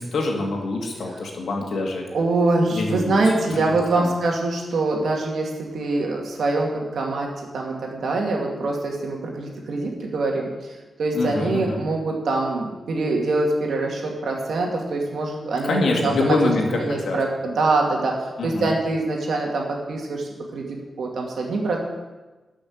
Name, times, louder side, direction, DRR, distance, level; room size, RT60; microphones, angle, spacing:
voice 1, 0.0-2.1 2.7-3.2 3.5-4.1 11.1-11.8 15.6-17.2 18.4-18.7, left 2 dB, 80° left, 0 dB, 2.4 m, -25 dB
voice 2, 2.1-10.5 11.0-16.4 16.7-21.8, right 2 dB, 85° right, 0 dB, 2.3 m, -24 dB
13.0 x 6.3 x 6.5 m, 1.2 s
wide cardioid pair, 115°, 0 cm